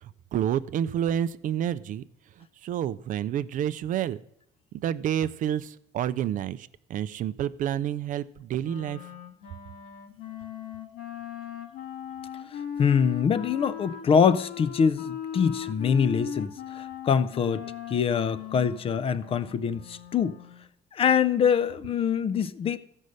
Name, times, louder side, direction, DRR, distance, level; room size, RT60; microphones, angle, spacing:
voice 1, 0.0-2.1 2.4-4.2 4.7-9.0, right 10 dB, 50° right, 0.4 m, -29 dB
Wind instrument woodwind instrument, 8.6-20.7, left 8 dB, 85° left, 1.4 m, -38 dB
voice 2, 12.5-20.4 20.9-22.8, left 7 dB, 30° left, 0.4 m, -24 dB
13.5 x 5.4 x 6.3 m
cardioid pair, 145°, 18 cm